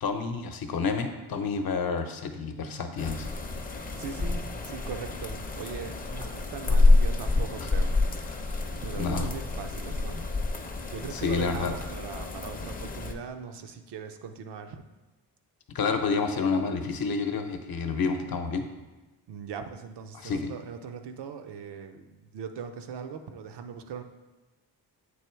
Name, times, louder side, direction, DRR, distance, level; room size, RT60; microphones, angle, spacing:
voice 1, 0.0-3.3 7.6-7.7 9.0-9.3 11.1-11.7 15.7-18.7 20.2-20.5, left 4 dB, 60° left, 6 dB, 0.8 m, -29 dB
sound 1, 3.0-13.1, left 2 dB, 20° left, 0.6 m, -28 dB
voice 2, 3.9-7.9 8.3-8.5 8.8-10.3 10.9-14.8 19.3-24.0, right 6 dB, 75° right, 7 dB, 0.7 m, -40 dB
7.8 x 3.0 x 4.4 m, 1.2 s
cardioid pair, 70°, 41 cm